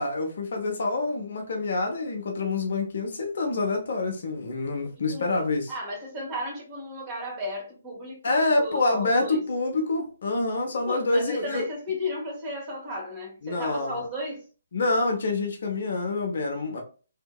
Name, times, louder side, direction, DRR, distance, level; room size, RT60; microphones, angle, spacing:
voice 1, 0.0-5.7 8.2-11.6 13.4-14.1 14.7-16.8, left 2 dB, 50° left, 0.7 m, -27 dB
voice 2, 5.1-5.4 5.7-9.4 10.9-14.4, left 1 dB, 20° right, 1.1 m, -34 dB
2.8 x 2.7 x 2.2 m
figure-of-eight pair, 135°, 0 cm